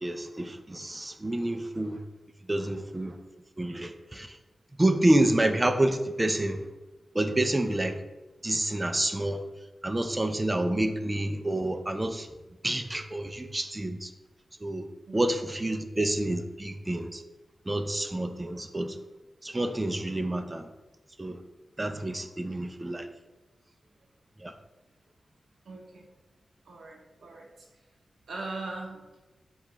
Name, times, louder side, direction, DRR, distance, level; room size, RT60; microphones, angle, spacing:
voice 1, 0.0-2.0 2.5-3.2 3.6-4.3 4.8-6.6 7.1-8.0 8.4-9.4 9.8-12.3 12.6-14.1 14.6-14.9 15.1-17.2 17.7-19.0 19.4-20.7 21.2-21.4 21.8-23.1 24.4-24.5, right 1 dB, 20° right, 8 dB, 0.3 m, -28 dB
voice 2, 25.6-26.1 26.7-27.7 28.3-29.0, right 3 dB, 85° right, -1 dB, 0.6 m, -40 dB
4.5 x 2.3 x 3.9 m, 1.1 s
wide cardioid pair, 115°, 0 cm